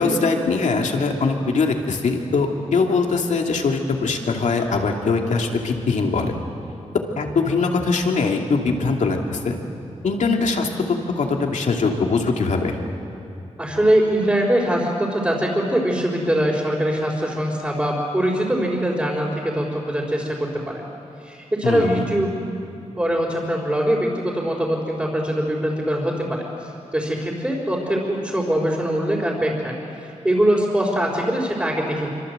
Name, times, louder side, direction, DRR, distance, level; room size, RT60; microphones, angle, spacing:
voice 1, 0.0-6.4 7.2-9.6 10.0-10.7 11.2-12.8 21.6-22.1, left 4 dB, 85° left, 2 dB, 2.7 m, -22 dB
voice 2, 13.6-20.9 21.2-22.4 23.0-32.1, right 1 dB, 15° right, -6 dB, 4.1 m, -22 dB
27.0 x 25.5 x 7.9 m, 2.6 s
wide cardioid pair, 155°, 12 cm